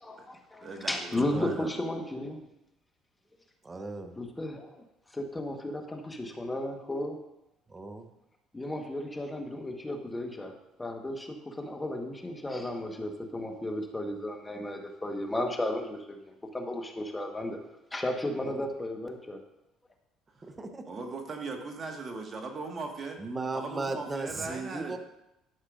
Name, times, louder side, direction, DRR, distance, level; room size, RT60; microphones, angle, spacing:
voice 1, 0.0-2.4 4.1-4.8 5.1-7.2 8.5-10.5 10.8-17.6 17.9-19.4, left 1 dB, 15° left, 3 dB, 1.3 m, -34 dB
voice 2, 0.6-1.7 20.4-20.5 20.8-23.2 23.5-25.0, right 3 dB, 40° right, 3 dB, 1.7 m, -39 dB
voice 3, 3.6-4.1 7.7-8.1 18.4-18.6 20.6-20.8 23.2-25.0, right 3 dB, 25° right, 6 dB, 0.9 m, -36 dB
12.0 x 6.4 x 2.6 m, 0.89 s
supercardioid pair, 70°, 0 cm